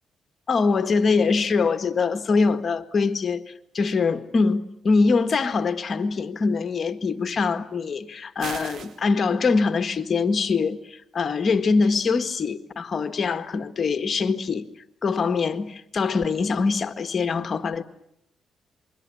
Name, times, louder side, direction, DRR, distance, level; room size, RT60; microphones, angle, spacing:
voice 1, 0.5-3.4 3.7-14.7 15.0-17.8, left 4 dB, 40° left, 1.6 m, -23 dB
sound 1, 8.4-9.0, right 6 dB, 65° right, 2.0 m, -36 dB
28.0 x 22.5 x 8.6 m
cardioid pair, 120°, 0 cm